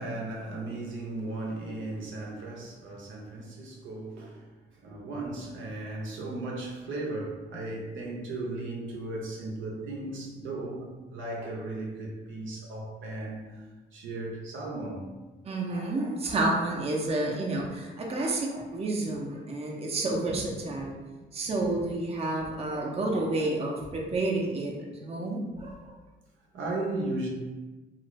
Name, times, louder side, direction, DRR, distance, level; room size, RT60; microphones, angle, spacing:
voice 1, 0.0-4.4 4.8-13.6 13.9-15.1 20.6-20.9 25.1-25.3 26.5-27.3, right 2 dB, 75° right, 0.7 m, -36 dB
voice 2, 15.4-20.9 21.3-25.8, right 2 dB, 30° right, 0.6 m, -30 dB
2.5 x 2.5 x 3.0 m
cardioid pair, 90°, 20 cm